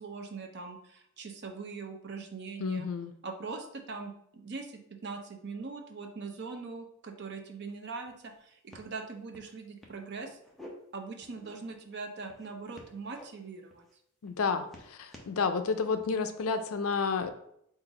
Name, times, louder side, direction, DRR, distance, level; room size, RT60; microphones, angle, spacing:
voice 1, 0.0-2.9 3.2-4.7 5.0-10.4 10.9-13.9, right 4 dB, 50° right, 3 dB, 0.6 m, -41 dB
voice 2, 2.6-3.1 14.2-17.3, left 5 dB, 75° left, 9 dB, 0.4 m, -30 dB
sound 1, 7.7-7.8 8.1-8.4 8.7-8.9 9.3-9.5 9.8-10.7 11.2-11.8 12.3-13.3 13.7-14.0 14.3-15.3 16.0-16.2, left 1 dB, ahead, 0.6 m, -52 dB
3.9 x 2.6 x 4.7 m, 0.72 s
head